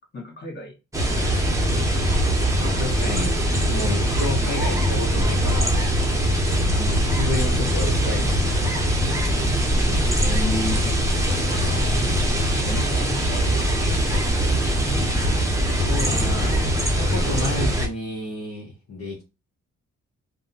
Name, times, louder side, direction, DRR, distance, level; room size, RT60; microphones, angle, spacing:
voice 1, 0.1-1.5 6.8-7.1 10.2-11.9 12.6-13.6 14.0-15.1, left 2 dB, 35° left, 0 dB, 1.4 m, -35 dB
Wind and Leaves, 0.9-17.9, equal, 10° right, 0.8 m, -22 dB
voice 2, 2.6-5.8 6.8-8.5 15.7-19.2, left 2 dB, 50° left, -3 dB, 1.0 m, -31 dB
3.4 x 2.2 x 2.6 m, 0.27 s
cardioid pair, 80°, 32 cm